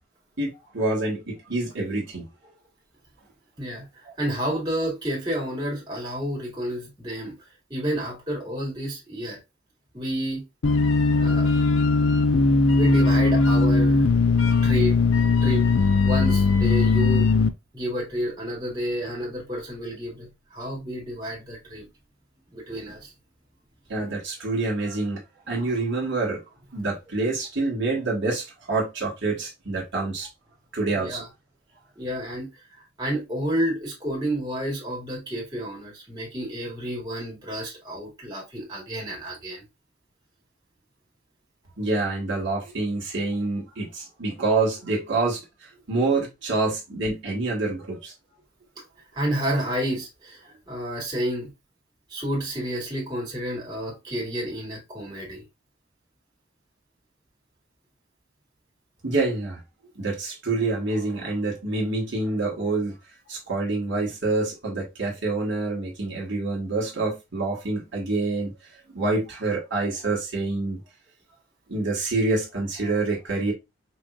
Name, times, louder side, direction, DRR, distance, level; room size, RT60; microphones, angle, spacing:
voice 1, 0.4-2.3 23.9-25.2 25.5-26.4 26.7-30.3 30.7-31.2 41.8-48.1 59.0-59.6 59.9-62.9 63.3-68.5 68.9-70.8 71.7-73.5, right 3 dB, 65° right, 1.5 m, -27 dB
voice 2, 3.6-7.3 7.7-9.4 9.9-10.4 11.2-11.5 12.8-14.0 14.6-15.0 15.4-15.7 16.0-17.3 17.7-21.9 22.5-23.1 30.9-31.3 32.0-39.6 49.1-51.5 52.1-55.4, equal, 20° right, 2.0 m, -30 dB
sound 1, 10.6-17.5, left 3 dB, 80° left, 0.5 m, -19 dB
5.3 x 3.1 x 2.4 m
head